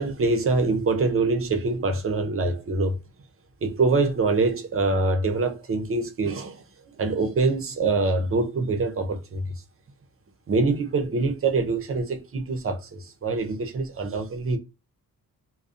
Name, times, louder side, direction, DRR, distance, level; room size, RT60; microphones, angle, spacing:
voice 1, 0.0-3.0 3.6-6.6 7.0-9.5 10.5-14.6, right 3 dB, 40° right, 0.5 m, -24 dB
2.5 x 2.0 x 2.4 m
wide cardioid pair, 140°, 35 cm